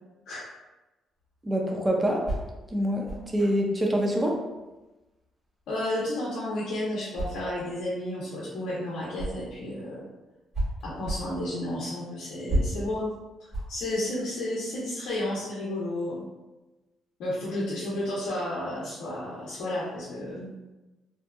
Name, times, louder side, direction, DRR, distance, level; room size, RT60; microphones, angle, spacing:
sound 1, 1.1-9.7 10.0-14.8, right 1 dB, 45° right, 1.4 m, -35 dB
voice 1, 1.4-2.2 2.7-3.1 3.3-4.4, equal, 15° right, 0 dB, 0.5 m, -25 dB
voice 2, 5.7-10.0 10.8-13.1 13.4-16.2 17.2-20.5, left 1 dB, 80° left, -8 dB, 0.6 m, -32 dB
2.8 x 2.4 x 2.2 m, 1.1 s
cardioid pair, 90°, 0 cm